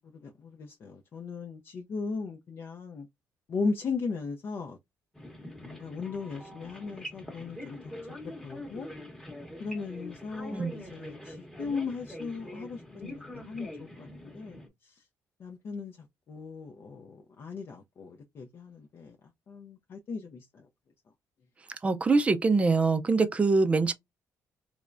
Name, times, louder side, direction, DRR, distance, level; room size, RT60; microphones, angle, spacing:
voice 1, 0.0-3.1 3.5-4.8 5.6-7.9 8.4-8.9 9.6-15.0 15.4-16.0 16.3-19.2 19.5-20.7, left 4 dB, 45° left, 0.5 m, -37 dB
sound 1, 5.1-14.7, left 1 dB, 5° left, 1.0 m, -44 dB
voice 2, 21.8-23.9, right 3 dB, 20° right, 0.5 m, -24 dB
3.5 x 3.1 x 2.5 m
cardioid pair, 145°, 6 cm